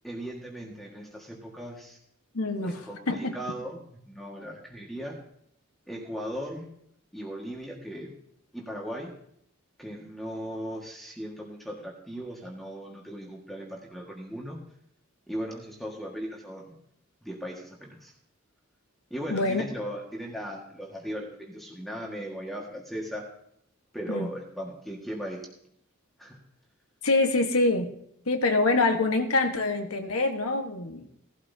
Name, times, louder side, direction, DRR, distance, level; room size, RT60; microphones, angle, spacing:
voice 1, 0.0-2.0 2.6-5.2 5.9-6.7 7.1-8.2 8.5-9.1 9.8-14.6 15.3-16.7 17.2-18.1 19.1-23.3 23.9-25.4 26.2-26.4, equal, ahead, -2 dB, 1.7 m, -37 dB
voice 2, 2.3-3.4 19.3-19.6 24.1-24.3 27.0-27.9 28.3-31.1, left 2 dB, 85° left, 5 dB, 1.4 m, -25 dB
17.5 x 12.5 x 2.8 m, 0.71 s
head